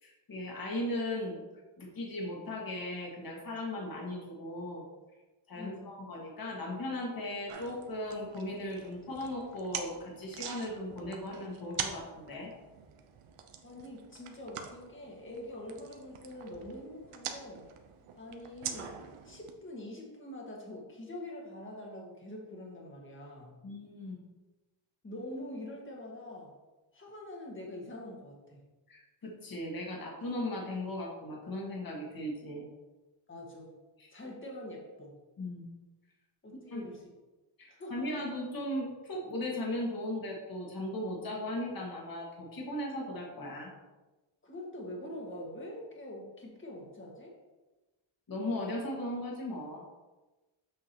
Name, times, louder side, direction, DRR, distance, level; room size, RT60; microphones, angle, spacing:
voice 1, 0.0-1.4 1.8-4.9 5.5-12.5 23.6-24.2 28.9-32.7 35.4-35.6 36.7-36.8 37.6-43.7 48.3-49.9, left 1 dB, 45° left, -3 dB, 2.1 m, -37 dB
voice 2, 5.6-5.9 13.6-17.7 18.2-19.0 19.2-23.5 25.0-26.6 26.9-28.6 33.3-33.8 34.1-35.1 36.4-37.1 37.7-38.1 44.4-47.4, left 1 dB, 25° left, -1 dB, 1.8 m, -44 dB
sound 1, 7.5-19.5, right 8 dB, 85° right, 0.9 m, -44 dB
7.7 x 6.2 x 3.0 m, 1.1 s
cardioid pair, 125°, 49 cm